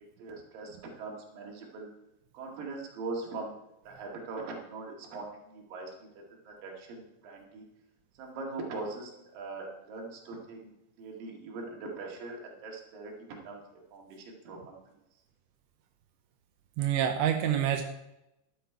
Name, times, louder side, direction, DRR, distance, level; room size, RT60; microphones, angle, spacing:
voice 1, 0.2-1.9 2.3-3.5 3.9-5.9 6.5-7.7 8.2-10.7 11.0-13.6 13.9-14.8, right 3 dB, 60° right, 0 dB, 3.6 m, -41 dB
voice 2, 16.8-17.8, right 10 dB, 85° right, 5 dB, 3.0 m, -27 dB
12.5 x 9.8 x 4.6 m, 0.89 s
omnidirectional pair, 4.9 m